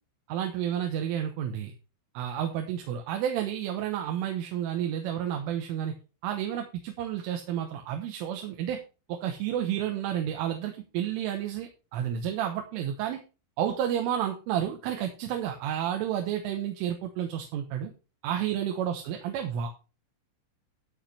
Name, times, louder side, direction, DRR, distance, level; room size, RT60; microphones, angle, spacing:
voice 1, 0.3-1.7 2.2-5.9 6.2-8.8 9.1-13.2 13.6-17.9 18.2-19.7, right 10 dB, 80° right, 4 dB, 3.6 m, -31 dB
13.0 x 4.9 x 5.6 m, 0.32 s
omnidirectional pair, 5.9 m